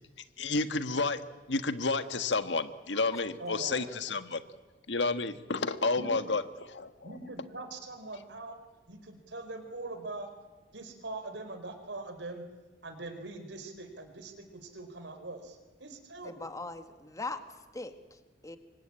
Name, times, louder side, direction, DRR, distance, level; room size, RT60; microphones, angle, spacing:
voice 1, 0.4-1.2 1.5-4.4 4.9-7.2, left 3 dB, 85° left, 10 dB, 1.5 m, -31 dB
voice 2, 3.4-3.9 6.0-6.3 7.0-8.6 8.9-10.3 10.7-12.4 12.8-16.5, right 2 dB, 80° right, 7 dB, 4.4 m, -42 dB
voice 3, 16.2-17.4 17.7-18.6, left 3 dB, 20° left, 8 dB, 1.9 m, -40 dB
27.5 x 24.5 x 8.8 m, 1.2 s
head